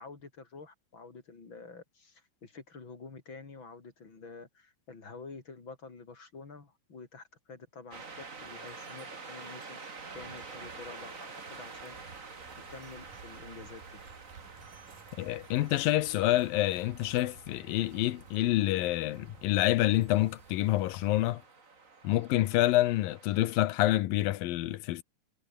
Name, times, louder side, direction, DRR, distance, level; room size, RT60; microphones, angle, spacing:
voice 1, 0.0-8.1 8.4-9.8 10.1-12.0 12.6-14.0, left 4 dB, 35° left, 4.0 m, -48 dB
sound 1, 7.9-23.7, right 4 dB, 25° right, 2.3 m, -48 dB
sound 2, 12.4-21.3, right 5 dB, 70° right, 6.0 m, -56 dB
voice 2, 15.2-21.4 22.0-25.0, left 15 dB, 85° left, 2.7 m, -27 dB
omnidirectional pair, 4.0 m